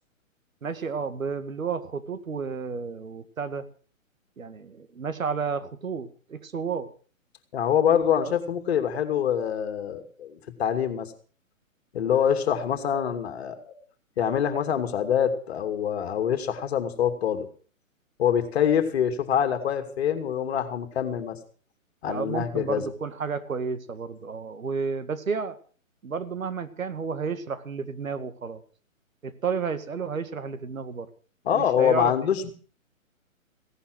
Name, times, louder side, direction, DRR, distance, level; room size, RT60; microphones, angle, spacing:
voice 1, 0.6-3.7 4.4-6.9 8.2-8.3 22.1-25.6 26.0-28.6 29.2-31.1 31.5-32.1, right 5 dB, 70° right, 11 dB, 2.1 m, -31 dB
voice 2, 7.5-11.1 11.9-13.7 14.2-17.5 18.2-21.4 22.0-22.8 31.5-32.5, left 8 dB, 50° left, 8 dB, 2.8 m, -25 dB
17.0 x 11.5 x 6.3 m, 0.42 s
figure-of-eight pair, 130°, 41 cm